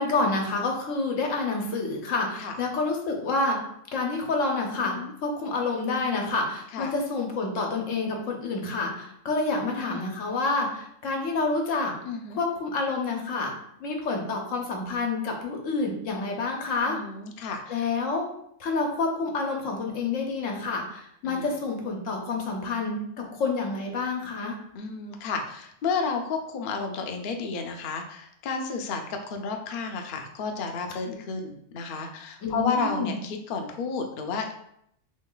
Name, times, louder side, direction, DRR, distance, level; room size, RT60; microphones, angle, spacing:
voice 1, 0.0-3.6 3.9-12.0 12.3-17.0 17.7-18.3 18.6-24.5 31.1-31.2 32.4-33.1, left 3 dB, 90° left, 1 dB, 1.2 m, -28 dB
voice 2, 4.8-5.1 6.7-6.9 9.6-10.1 12.1-12.4 16.9-17.8 21.2-21.5 24.7-34.5, left 4 dB, 55° left, 4 dB, 0.6 m, -32 dB
3.2 x 3.0 x 3.8 m, 0.72 s
omnidirectional pair, 1.3 m